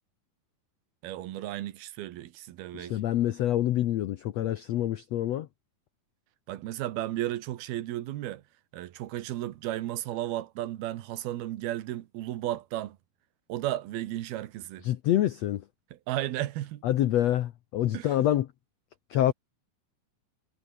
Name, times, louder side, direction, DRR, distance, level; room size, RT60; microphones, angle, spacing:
voice 1, 1.0-3.0 6.5-8.4 8.7-13.0 13.5-14.9 15.9-16.8 17.9-18.1, right 14 dB, 85° right, 3.2 m, -34 dB
voice 2, 2.7-5.5 14.8-15.6 16.8-18.5 19.1-19.3, left 12 dB, 80° left, 1.5 m, -26 dB
omnidirectional pair, 4.3 m